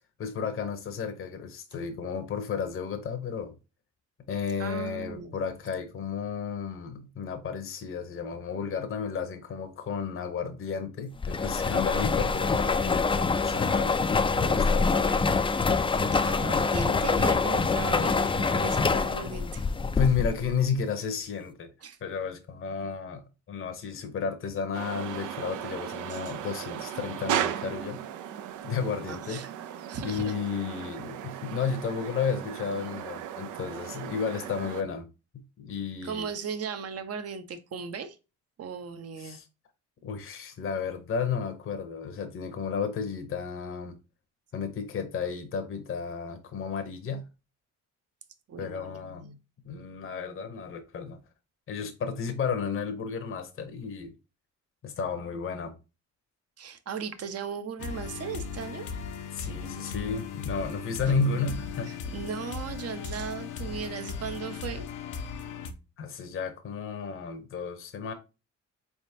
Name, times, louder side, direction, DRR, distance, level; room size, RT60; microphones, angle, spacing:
voice 1, 0.2-3.5 4.3-13.9 14.4-15.4 15.9-16.0 19.9-21.7 22.0-23.2 23.5-28.0 28.6-29.4 30.0-35.1 35.6-36.3 39.2-39.5 40.0-44.0 44.5-47.2 48.6-49.3 49.6-51.2 51.7-54.1 54.8-55.7 59.3-61.9 66.0-68.1, left 6 dB, 45° left, 0.8 m, -32 dB
voice 2, 4.6-5.4 16.1-19.7 21.8-22.0 26.1-26.3 29.1-30.3 36.0-38.2 38.6-39.4 48.5-49.4 56.6-58.9 61.0-61.1 61.9-64.9, right 6 dB, 55° right, 0.8 m, -37 dB
sound 1, 11.2-20.5, left 4 dB, 20° left, 0.4 m, -25 dB
sound 2, 24.7-34.8, right 10 dB, 80° right, 0.5 m, -36 dB
sound 3, 57.8-65.7, left 6 dB, 85° left, 0.7 m, -37 dB
4.1 x 3.6 x 2.7 m
cardioid pair, 90°, 30 cm